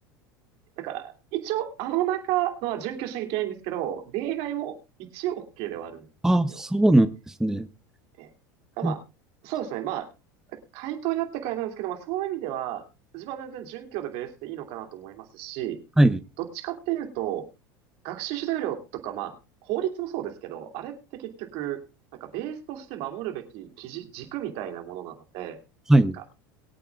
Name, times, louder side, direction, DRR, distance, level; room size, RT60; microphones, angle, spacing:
voice 1, 0.8-6.1 6.5-6.6 8.2-8.3 8.8-9.0 9.4-10.1 10.5-12.8 13.1-15.8 16.4-17.5 18.0-19.3 19.6-21.8 22.2-25.6 26.1-26.2, right 13 dB, 65° right, 2.7 m, -32 dB
voice 2, 6.2-7.7 8.8-8.9 16.0-16.2 25.9-26.2, right 1 dB, 5° right, 0.8 m, -20 dB
23.0 x 8.6 x 2.4 m
hypercardioid pair, 90°, 11 cm